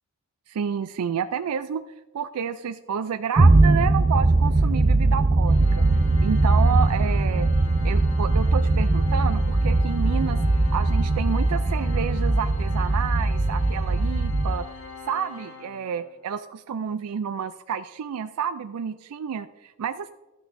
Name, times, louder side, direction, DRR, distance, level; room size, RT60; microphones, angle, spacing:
voice 1, 0.5-1.8 2.1-5.9 6.2-7.5 7.8-14.7 15.1-20.1, right 7 dB, 90° right, 10 dB, 0.4 m, -30 dB
sound 1, 3.4-14.6, right 2 dB, 30° right, 0.5 m, -20 dB
Organ, 5.5-16.2, left 4 dB, 55° left, 2.1 m, -43 dB
13.0 x 8.6 x 2.6 m, 1.1 s
head